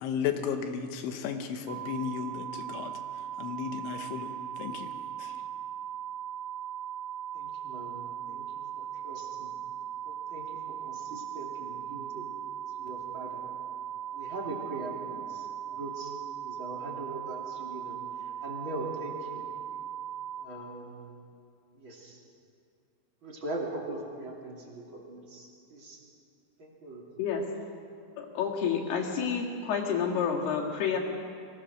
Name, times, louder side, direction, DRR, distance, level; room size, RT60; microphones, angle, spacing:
voice 1, 0.0-3.0 3.4-4.9 5.2-5.3, left 7 dB, 85° left, 6 dB, 3.6 m, -34 dB
sound 1, 1.7-20.5, right 10 dB, 80° right, 3.2 m, -39 dB
voice 2, 7.3-8.4 8.8-9.5 10.0-12.3 12.8-13.4 14.1-18.0 18.4-19.4 20.4-21.1 21.8-22.2 23.2-26.0 26.8-27.0, right 2 dB, 30° right, -2 dB, 2.7 m, -41 dB
voice 3, 28.2-31.0, left 7 dB, 65° left, 0 dB, 3.8 m, -29 dB
23.0 x 18.0 x 6.5 m, 2.4 s
omnidirectional pair, 5.3 m